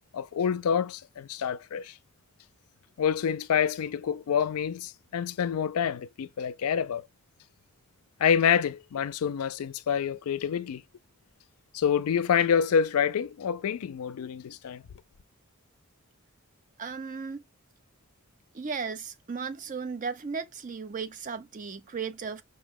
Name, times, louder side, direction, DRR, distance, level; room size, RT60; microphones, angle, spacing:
voice 1, 0.1-1.9 3.0-7.1 8.2-10.8 11.7-14.8, left 7 dB, 75° left, 0.4 m, -27 dB
voice 2, 16.8-17.4 18.5-22.4, right 5 dB, 35° right, 0.4 m, -35 dB
5.4 x 2.1 x 3.5 m
head